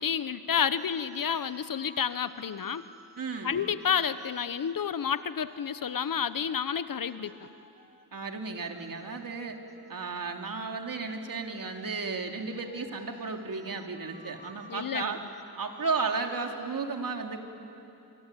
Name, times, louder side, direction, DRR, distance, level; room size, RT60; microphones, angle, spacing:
voice 1, 0.0-2.8 3.4-7.3 14.7-15.1, left 7 dB, 55° left, 14 dB, 1.0 m, -30 dB
sound 1, 0.7-10.3 11.1-16.9, right 1 dB, 25° right, 3.2 m, -54 dB
voice 2, 3.2-3.6 8.1-9.6 9.9-15.2 15.6-17.4, right 4 dB, 55° right, 3 dB, 3.0 m, -34 dB
25.5 x 25.0 x 9.1 m, 2.8 s
cardioid pair, 75°, 40 cm